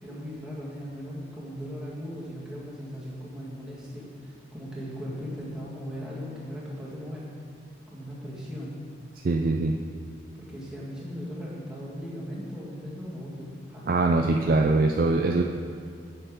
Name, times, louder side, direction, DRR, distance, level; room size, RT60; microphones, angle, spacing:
voice 1, 0.0-7.3 7.9-8.8 10.4-13.8, equal, 5° right, -7 dB, 1.8 m, -38 dB
voice 2, 9.2-9.8 13.9-15.4, right 3 dB, 50° right, 2 dB, 0.4 m, -22 dB
7.6 x 6.7 x 5.1 m, 2.4 s
head